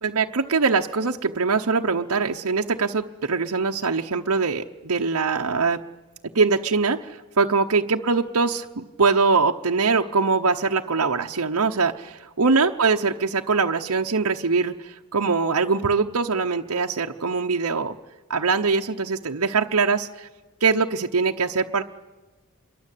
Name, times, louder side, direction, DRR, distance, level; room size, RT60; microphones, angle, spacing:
voice 1, 0.0-5.8 6.3-17.9 18.3-20.3 20.6-21.8, right 4 dB, 75° right, 2 dB, 1.0 m, -22 dB
27.0 x 22.5 x 8.5 m, 1.2 s
head